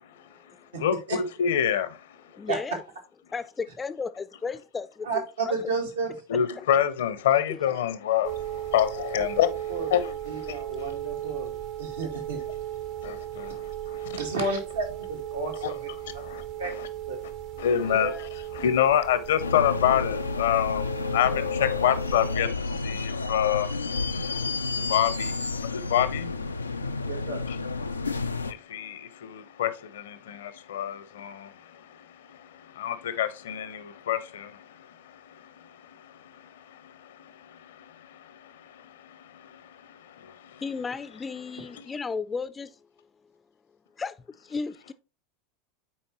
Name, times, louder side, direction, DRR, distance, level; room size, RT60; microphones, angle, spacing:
voice 1, 0.2-0.8 2.3-2.8 3.3-5.7 6.6-6.7 7.5-7.6 18.0-18.3 40.6-42.9 44.0-44.9, left 5 dB, 20° left, 0.4 m, -35 dB
voice 2, 0.8-2.4 6.3-9.5 9.9-10.6 13.0-14.2 15.6-15.7 16.2-16.9 17.6-24.1 24.6-26.5 27.5-27.6 27.9-40.6, left 10 dB, 70° left, 0.8 m, -28 dB
voice 3, 5.0-6.1 9.7-9.9 10.3-11.5 11.8-12.4 14.2-15.9 16.6-16.7 17.1-17.2 17.9-18.1 27.1-27.4, right 3 dB, 80° right, 1.8 m, -31 dB
sound 1, 8.2-22.4, right 12 dB, 55° right, 1.0 m, -37 dB
sound 2, 19.4-28.5, left 4 dB, 85° left, 0.4 m, -30 dB
8.7 x 4.4 x 2.9 m
figure-of-eight pair, 85°, 0 cm